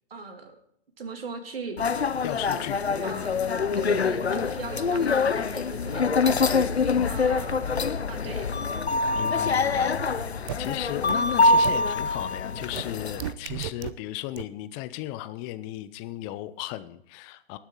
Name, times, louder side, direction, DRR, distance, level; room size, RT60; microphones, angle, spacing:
voice 1, 0.1-0.6 1.0-1.8 3.0-3.3 3.8-7.7 8.1-8.7, right 4 dB, 65° right, 5 dB, 2.6 m, -39 dB
sound 1, 1.8-13.3, left 4 dB, 85° left, 0.8 m, -25 dB
voice 2, 2.2-2.8 6.9-7.2 9.1-10.3 10.6-17.6, left 15 dB, 20° left, 13 dB, 0.6 m, -35 dB
sound 2, 6.1-13.7, right 2 dB, 85° right, 1.6 m, -49 dB
sound 3, 10.5-10.6 11.1-11.2 11.6-11.7 12.8-12.9 13.2-13.9 14.4-14.5, right 15 dB, 30° right, 0.5 m, -32 dB
19.0 x 7.1 x 3.9 m, 0.71 s
figure-of-eight pair, 120°, 31 cm